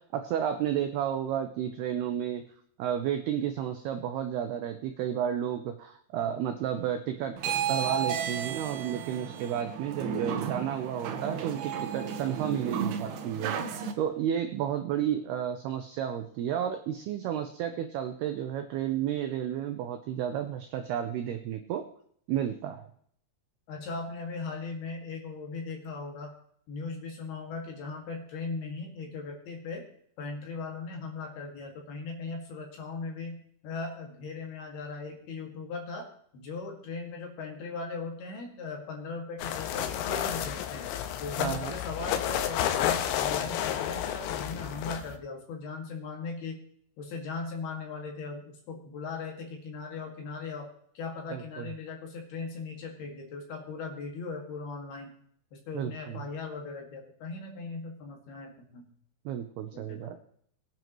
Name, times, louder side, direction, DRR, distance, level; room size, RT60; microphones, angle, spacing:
voice 1, 0.0-2.4 2.8-21.8 22.3-22.9 41.4-41.8 51.3-51.7 55.7-56.2 59.3-60.2, right 9 dB, 85° right, 6 dB, 2.2 m, -32 dB
sound 1, 7.4-13.9, right 7 dB, 70° right, 2.7 m, -33 dB
voice 2, 23.7-26.3 26.7-29.8 30.2-36.1 36.3-40.9 41.2-46.6 47.0-50.7 51.0-55.1 55.5-58.9 59.7-60.2, left 4 dB, 60° left, 1 dB, 3.7 m, -38 dB
sound 2, 39.4-45.2, left 10 dB, 85° left, 3.4 m, -31 dB
22.5 x 9.6 x 3.1 m, 0.64 s
omnidirectional pair, 5.7 m